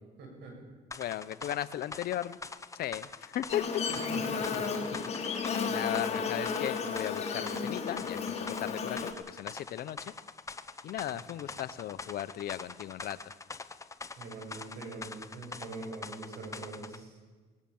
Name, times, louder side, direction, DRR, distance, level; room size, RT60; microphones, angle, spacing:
voice 1, 0.2-0.5 3.9-4.9 6.4-6.5 11.1-11.5 14.2-17.2, right 3 dB, 80° right, 2 dB, 7.8 m, -43 dB
sound 1, 0.9-17.0, left 4 dB, 20° left, 0.9 m, -44 dB
voice 2, 1.0-2.4 2.7-3.6 5.7-8.2 8.6-10.1 10.8-13.2, left 12 dB, 65° left, 14 dB, 0.9 m, -36 dB
Buzz, 3.5-9.1, left 5 dB, 40° left, 3.1 m, -33 dB
21.5 x 19.0 x 7.3 m, 1.4 s
cardioid pair, 110°, 17 cm